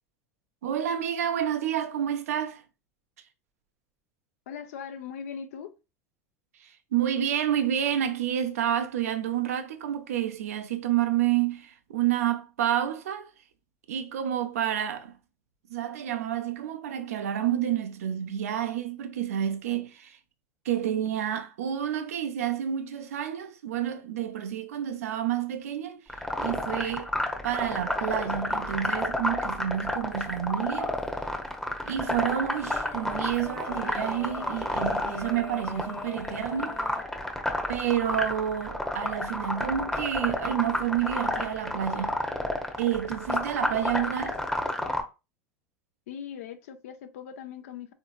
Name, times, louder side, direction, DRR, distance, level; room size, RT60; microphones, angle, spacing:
voice 1, 0.6-2.6 6.6-13.3 13.9-15.1 15.7-20.2 20.6-27.1 27.4-31.0 31.9-36.8 37.7-42.2 42.8-44.4, right 10 dB, 80° right, 0.6 m, -29 dB
voice 2, 4.5-5.7 46.1-47.9, left 7 dB, 75° left, 0.6 m, -40 dB
sound 1, 26.1-45.0, left 1 dB, 5° left, 0.8 m, -30 dB
sound 2, 30.1-30.5 31.0-31.1 32.1-32.2 32.6-37.0, left 7 dB, 40° left, 0.7 m, -43 dB
3.6 x 2.7 x 2.4 m
hypercardioid pair, 85°, 8 cm